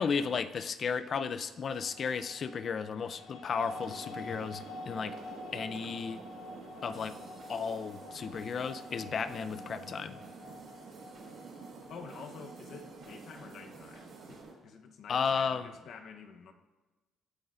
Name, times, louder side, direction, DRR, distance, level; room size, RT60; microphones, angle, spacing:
voice 1, 0.0-5.2 5.5-6.2 6.8-7.2 7.5-10.2 15.1-15.7, left 6 dB, 40° left, 13 dB, 0.4 m, -34 dB
sound 1, 1.7-13.9, left 2 dB, 90° left, 1.2 m, -48 dB
sound 2, 3.6-14.5, right 4 dB, 65° right, 1.6 m, -49 dB
sound 3, 6.9-14.4, right 3 dB, 40° right, 3.3 m, -58 dB
voice 2, 11.8-16.5, left 6 dB, 60° left, 6 dB, 0.9 m, -49 dB
18.5 x 9.6 x 2.5 m, 1.2 s
cardioid pair, 145°, 0 cm